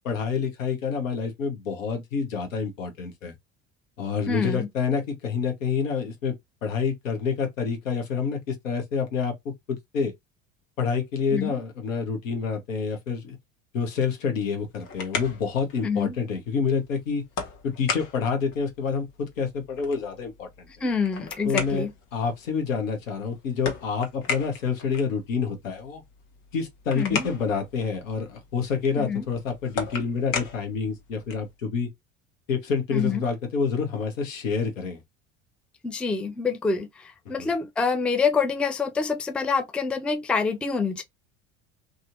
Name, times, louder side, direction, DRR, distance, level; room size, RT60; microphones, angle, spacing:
voice 1, 0.0-3.3 4.0-6.3 6.6-10.1 10.8-13.4 13.7-17.2 17.6-20.7 21.4-26.0 26.5-31.9 32.5-35.0 37.4-37.5, left 5 dB, 85° left, 1.2 m, -28 dB
voice 2, 4.3-4.7 11.3-11.5 15.8-16.2 20.8-21.9 26.9-27.3 29.0-29.2 32.9-33.3 35.8-41.0, left 5 dB, 5° left, 0.3 m, -26 dB
sound 1, 14.6-31.6, left 5 dB, 55° left, 1.2 m, -37 dB
2.9 x 2.6 x 2.6 m
hypercardioid pair, 75°, 38 cm